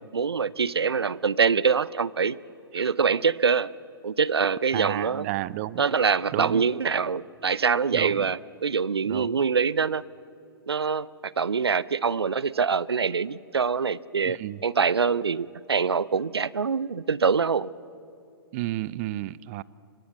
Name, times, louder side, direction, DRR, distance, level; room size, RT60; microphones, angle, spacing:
voice 1, 0.1-2.4 2.7-3.7 4.0-5.3 5.8-10.0 10.7-17.7, right 5 dB, 80° right, 21 dB, 0.6 m, -24 dB
voice 2, 4.7-5.9 6.3-6.6 7.9-8.3 9.1-9.4 14.2-14.6 18.5-19.6, right 17 dB, 35° right, 21 dB, 0.5 m, -32 dB
24.5 x 21.0 x 7.3 m, 2.6 s
figure-of-eight pair, 120°, 13 cm